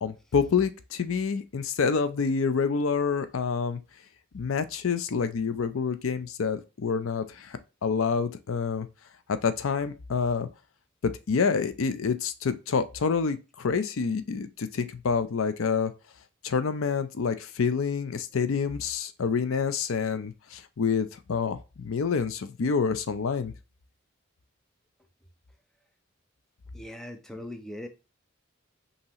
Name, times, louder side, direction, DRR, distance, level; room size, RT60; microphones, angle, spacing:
voice 1, 0.0-3.8 4.3-8.9 9.3-10.5 11.0-15.9 16.4-23.5, left 5 dB, 80° left, 0.5 m, -27 dB
voice 2, 26.7-27.9, left 1 dB, ahead, 0.5 m, -40 dB
5.4 x 2.9 x 2.8 m
head